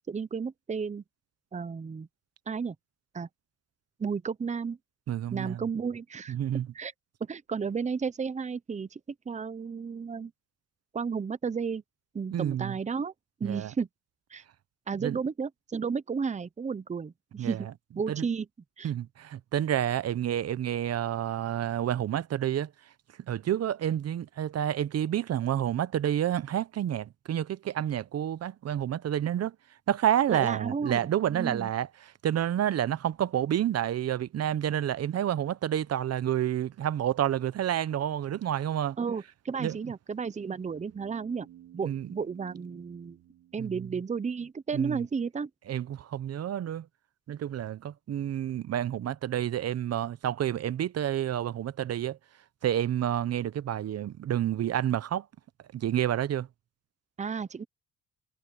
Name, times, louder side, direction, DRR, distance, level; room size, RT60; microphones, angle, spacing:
voice 1, 0.1-1.0 1.5-2.1 2.5-2.7 3.1-3.3 4.0-4.8 5.3-6.3 6.7-6.9 7.2-9.0 9.3-10.3 10.9-11.8 12.1-13.1 13.4-13.9 14.3-14.4 14.9-17.7 18.0-18.5 18.8-18.9 30.3-31.0 31.3-31.7 39.0-41.5 41.7-43.2 43.5-45.5 57.2-57.6, right 5 dB, 25° right, 0.8 m, -33 dB
voice 2, 5.1-5.7 6.3-6.7 12.3-12.7 13.4-13.7 15.0-15.2 17.4-17.6 18.1-18.3 18.8-22.7 23.3-29.6 29.9-39.0 39.6-39.8 41.8-42.1 43.6-43.9 44.7-45.1 45.7-46.9 47.3-52.2 52.6-55.3 55.7-56.5, right 11 dB, 55° right, 0.8 m, -29 dB
sound 1, 40.6-44.3, right 12 dB, 85° right, 3.8 m, -53 dB
cardioid pair, 90°, 30 cm